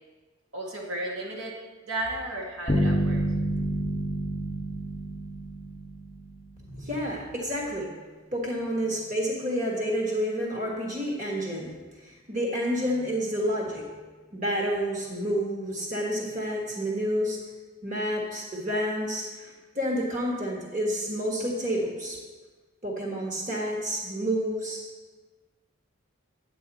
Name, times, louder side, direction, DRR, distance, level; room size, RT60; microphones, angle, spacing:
voice 1, 0.5-1.6 1.9-3.2, right 1 dB, 85° right, -2 dB, 1.9 m, -34 dB
sound 1, 2.7-6.4, right 1 dB, 25° left, 0.8 m, -28 dB
voice 2, 6.7-7.9 8.3-11.7 12.3-13.8 14.3-17.4 17.8-22.2 22.8-24.8, equal, 35° right, -2 dB, 1.5 m, -29 dB
9.4 x 8.3 x 4.1 m, 1.3 s
head